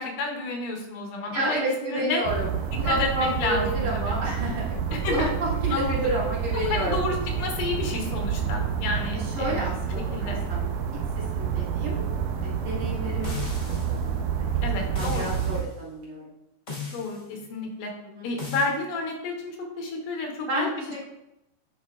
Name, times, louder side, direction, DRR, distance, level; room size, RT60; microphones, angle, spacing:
voice 1, 0.0-1.6 1.9-2.2 2.8-4.2 4.9-5.3 5.7-6.1 6.5-9.6 10.1-10.4 14.6-15.2 16.9-17.9 18.2-21.0, left 3 dB, 75° left, 2 dB, 2.3 m, -30 dB
voice 2, 1.3-4.8 5.1-7.0 9.1-10.7 11.2-12.0 12.4-13.5 13.9-14.0 14.4-14.5 14.9-16.3 18.1-18.3 20.5-21.1, right 1 dB, 55° right, -6 dB, 2.6 m, -30 dB
sound 1, 2.2-15.6, right 7 dB, 80° right, 1.9 m, -28 dB
sound 2, 13.2-14.0 14.9-15.7 16.7-17.2 18.4-18.7, left 4 dB, 30° left, 1.2 m, -37 dB
10.5 x 4.3 x 2.4 m, 0.90 s
omnidirectional pair, 3.9 m